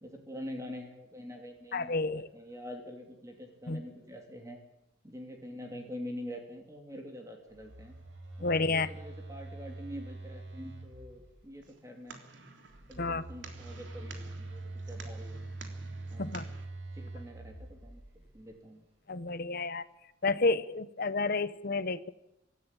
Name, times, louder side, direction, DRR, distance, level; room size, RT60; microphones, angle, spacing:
voice 1, 0.0-4.6 5.0-8.0 8.4-12.2 12.9-15.4 16.1-16.5 16.9-18.0 18.3-18.8, equal, 15° right, 2 dB, 3.0 m, -45 dB
voice 2, 1.7-2.3 3.7-3.8 8.4-8.9 13.0-13.2 16.2-16.4 19.1-19.8 20.2-22.1, left 3 dB, 50° left, 15 dB, 1.0 m, -30 dB
Telephone, 7.5-11.5 12.7-18.4, right 2 dB, 90° right, 4.9 m, -44 dB
sound 1, 11.6-16.7, right 4 dB, 70° right, 3.4 m, -51 dB
25.0 x 13.5 x 9.0 m, 0.89 s
head